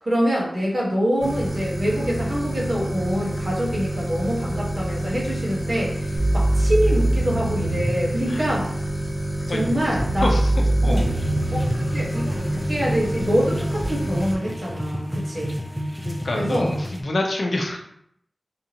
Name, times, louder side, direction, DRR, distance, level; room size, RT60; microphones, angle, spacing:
voice 1, 0.0-8.8 9.5-10.3 10.8-11.1 11.5-15.5 16.3-16.7, equal, 45° right, -4 dB, 1.2 m, -25 dB
sound 1, 1.2-14.4, right 1 dB, 45° left, 1.2 m, -28 dB
sound 2, 6.2-8.1 10.0-12.0 13.8-13.9, right 1 dB, 60° right, 0.5 m, -22 dB
sound 3, 10.9-17.0, equal, ahead, 0.5 m, -29 dB
voice 2, 16.0-17.8, left 2 dB, 70° left, 1 dB, 0.6 m, -26 dB
3.5 x 2.7 x 2.8 m, 0.71 s
wide cardioid pair, 60°, 0 cm